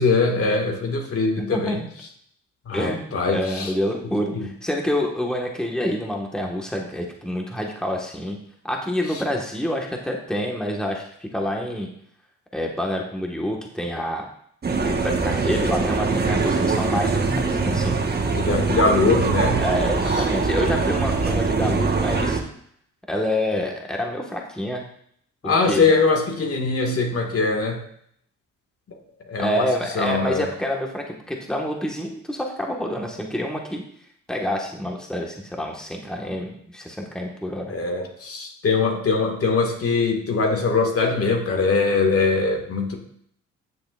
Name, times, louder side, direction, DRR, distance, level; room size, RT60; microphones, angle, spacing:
voice 1, 0.0-1.8 2.7-3.7 4.3-4.5 18.4-19.6 25.4-27.8 29.3-29.7 30.0-30.5 37.7-43.0, left 4 dB, 50° left, 2 dB, 2.0 m, -22 dB
voice 2, 1.4-1.9 2.7-8.4 8.6-11.9 12.5-14.3 14.8-18.0 19.6-22.4 23.1-24.8 25.4-25.9 29.4-33.8 34.3-37.7, equal, ahead, 0 dB, 1.6 m, -27 dB
sound 1, 14.6-22.4, right 4 dB, 30° right, 1.4 m, -22 dB
14.5 x 6.8 x 2.5 m, 0.66 s
cardioid pair, 90°, 30 cm